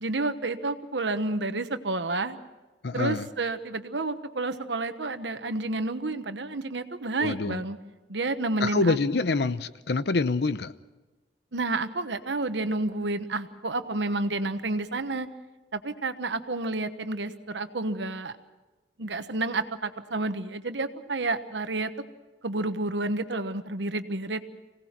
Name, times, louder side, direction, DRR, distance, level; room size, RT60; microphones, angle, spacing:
voice 1, 0.0-2.4 2.9-7.8 8.1-9.0 11.5-15.3 15.7-18.3 19.0-21.9 22.4-24.4, right 2 dB, 85° right, 9 dB, 1.2 m, -30 dB
voice 2, 2.8-3.3 7.2-7.6 8.6-10.7, left 3 dB, 70° left, 14 dB, 0.7 m, -26 dB
25.0 x 18.0 x 5.9 m, 1.2 s
head